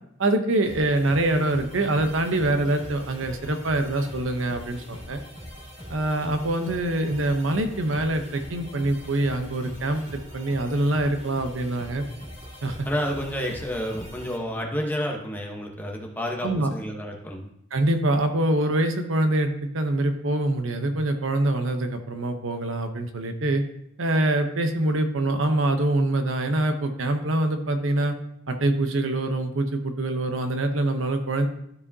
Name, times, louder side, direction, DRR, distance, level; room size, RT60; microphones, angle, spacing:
voice 1, 0.2-5.2 5.9-10.0 10.3-12.1 12.6-12.8 16.4-16.7 17.7-23.6 24.0-28.1 28.5-31.5, right 1 dB, 75° right, 6 dB, 0.8 m, -24 dB
sound 1, 0.6-14.4, equal, 30° right, 2.3 m, -42 dB
voice 2, 12.8-17.5, equal, 10° left, 0 dB, 1.0 m, -30 dB
12.5 x 4.9 x 2.7 m, 0.76 s
head